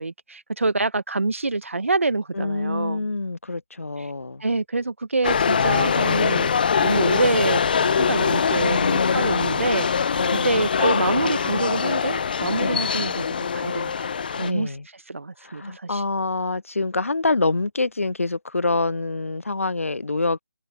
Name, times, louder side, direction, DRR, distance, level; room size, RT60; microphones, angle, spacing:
voice 1, 0.0-3.0 4.4-6.5 6.8-13.3 13.5-14.1 14.3-14.7 15.1-16.0, right 3 dB, 60° right, 1.7 m, -26 dB
voice 2, 2.3-4.4 8.6-9.6 10.1-10.6 12.6-12.9 14.4-14.9 15.4-20.4, left 3 dB, 65° left, 0.8 m, -26 dB
sound 1, 5.2-14.5, left 6 dB, 40° left, 1.2 m, -23 dB
figure-of-eight pair, 150°, 8 cm